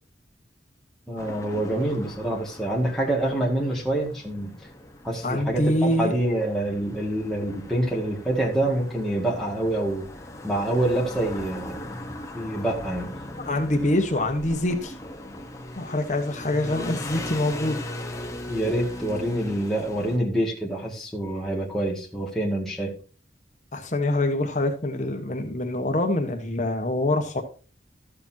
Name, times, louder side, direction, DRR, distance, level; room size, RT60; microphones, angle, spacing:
voice 1, 1.1-4.5 5.0-10.1 10.4-13.1 16.5-17.0 18.5-22.9, right 1 dB, ahead, -4 dB, 2.1 m, -26 dB
sound 1, 1.2-20.2, left 1 dB, 15° left, 1.1 m, -39 dB
voice 2, 5.2-6.1 13.4-14.9 15.7-17.8 23.7-27.4, left 1 dB, 40° left, 5 dB, 1.2 m, -25 dB
13.5 x 7.0 x 2.8 m, 0.37 s
head